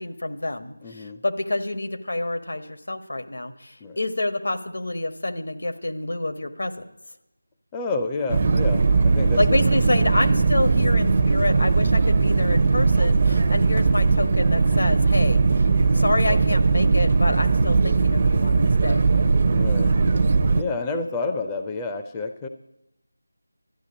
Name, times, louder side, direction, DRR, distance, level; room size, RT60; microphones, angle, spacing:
voice 1, 0.0-6.7 9.4-15.7 15.9-19.1, left 2 dB, 70° left, 7 dB, 1.5 m, -27 dB
voice 2, 0.8-1.2 3.8-4.0 7.7-9.6 19.5-19.9 20.5-22.5, left 3 dB, 10° left, 5 dB, 0.5 m, -29 dB
sound 1, 8.3-20.6, right 4 dB, 35° right, 0.6 m, -19 dB
12.0 x 9.6 x 8.4 m, 0.90 s
figure-of-eight pair, 170°, 0 cm